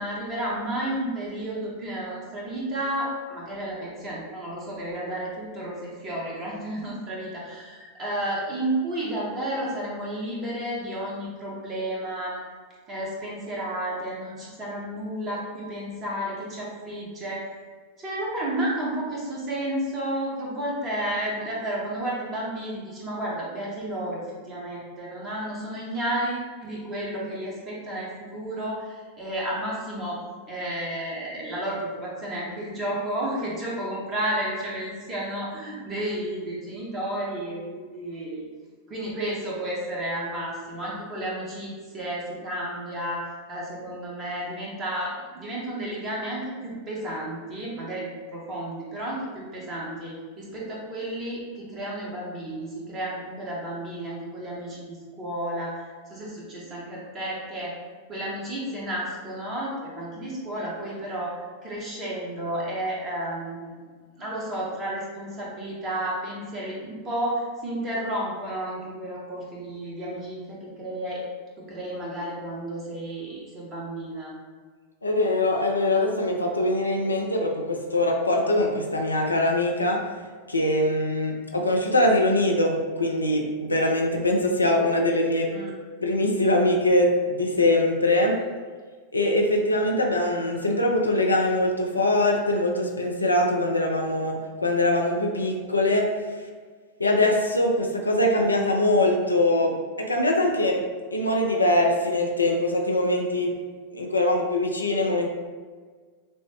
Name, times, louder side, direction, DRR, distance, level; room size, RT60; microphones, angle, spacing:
voice 1, 0.0-12.5 12.9-17.6 18.0-30.2 30.5-38.4 38.9-43.2 43.5-57.7 58.1-63.7 64.2-71.2 71.6-74.3 85.5-85.7, right 1 dB, 25° right, -5 dB, 1.3 m, -32 dB
voice 2, 75.0-80.0 80.5-85.5 86.0-88.4 89.1-96.4 97.0-100.8 101.1-103.6 103.9-105.3, left 1 dB, 80° left, 1 dB, 0.5 m, -23 dB
6.1 x 2.1 x 3.1 m, 1.5 s
figure-of-eight pair, 90°, 0 cm